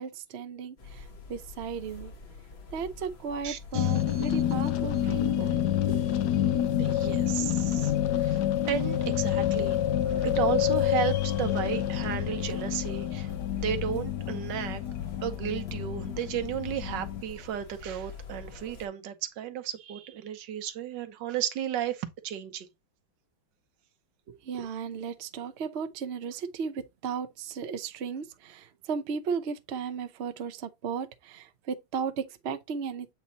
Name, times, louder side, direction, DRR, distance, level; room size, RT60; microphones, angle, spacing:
voice 1, 0.0-2.1 2.7-6.3 24.4-33.1, right 6 dB, 85° right, 0.5 m, -35 dB
sound 1, 0.8-18.9, left 4 dB, 40° left, 1.0 m, -47 dB
voice 2, 3.4-4.4 6.8-9.8 10.0-14.8 15.2-22.7, right 10 dB, 65° right, 1.4 m, -34 dB
sound 2, 3.7-17.2, left 11 dB, 70° left, 1.0 m, -28 dB
8.3 x 2.8 x 4.0 m
omnidirectional pair, 2.2 m